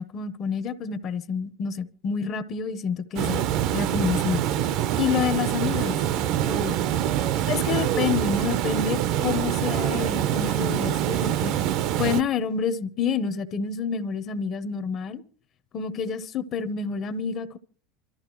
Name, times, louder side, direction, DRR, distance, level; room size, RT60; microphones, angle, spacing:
voice 1, 0.0-3.4 3.7-4.5 5.0-6.0 6.4-6.7 7.5-11.5 12.0-15.2 15.7-17.6, left 6 dB, 30° left, 0.7 m, -28 dB
Water, 3.2-12.2, right 11 dB, 45° right, 0.6 m, -25 dB
25.5 x 13.5 x 3.0 m
supercardioid pair, 170°, 0 cm